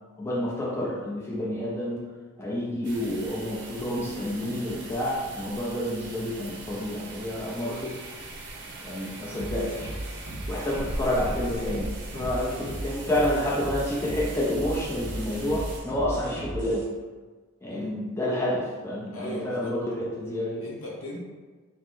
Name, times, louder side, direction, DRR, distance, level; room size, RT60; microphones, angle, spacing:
voice 1, 0.2-2.0 2.4-8.0 8.8-9.9 10.5-16.9 17.6-20.7, left 1 dB, 10° left, -4 dB, 0.4 m, -29 dB
sound 1, 2.8-15.8, right 2 dB, 55° right, 0.6 m, -40 dB
sound 2, 9.3-16.8, right 1 dB, 35° right, 1.0 m, -36 dB
voice 2, 12.5-12.9 17.7-17.9 19.1-19.7 20.6-21.2, left 1 dB, 70° left, -4 dB, 0.9 m, -38 dB
3.0 x 2.8 x 3.8 m, 1.3 s
head